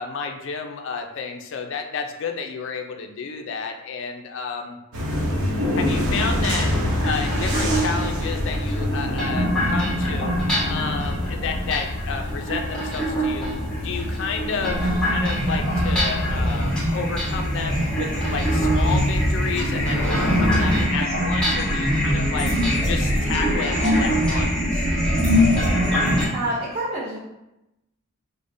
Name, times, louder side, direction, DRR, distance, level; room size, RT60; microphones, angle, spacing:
voice 1, 0.0-4.8 5.8-6.7 7.0-10.3 10.7-13.5 13.7-22.5 22.8-24.9, left 5 dB, 55° left, 4 dB, 0.4 m, -31 dB
sound 1, 4.9-20.9, left 1 dB, 80° right, 0.7 m, -27 dB
sound 2, 6.9-26.3, equal, 5° left, 0.9 m, -23 dB
voice 2, 26.3-27.2, right 1 dB, 25° right, -10 dB, 0.7 m, -27 dB
4.8 x 2.0 x 2.6 m, 0.91 s
head